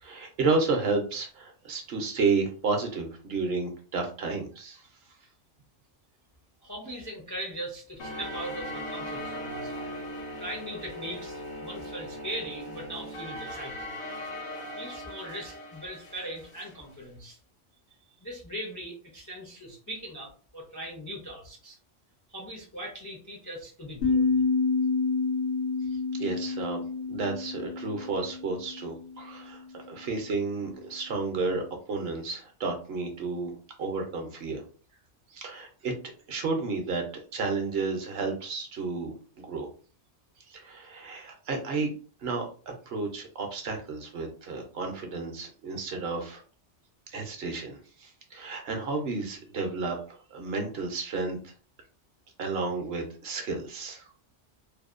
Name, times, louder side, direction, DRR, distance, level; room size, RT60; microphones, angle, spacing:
voice 1, 0.0-4.8 26.1-26.8 27.1-31.6 31.9-34.6 35.3-35.9 36.3-37.0 37.3-39.7 40.5-41.9 42.2-46.4 47.1-51.4 52.4-54.1, right 4 dB, 60° right, 4 dB, 0.8 m, -31 dB
voice 2, 6.6-9.7 10.4-13.9 14.8-17.4 18.2-21.8 22.3-24.4, right 1 dB, 30° left, -1 dB, 0.3 m, -40 dB
sound 1, 8.0-16.8, equal, 65° left, 0.9 m, -39 dB
sound 2, 24.0-29.2, left 4 dB, 90° left, 1.1 m, -28 dB
2.7 x 2.1 x 2.4 m, 0.39 s
omnidirectional pair, 1.2 m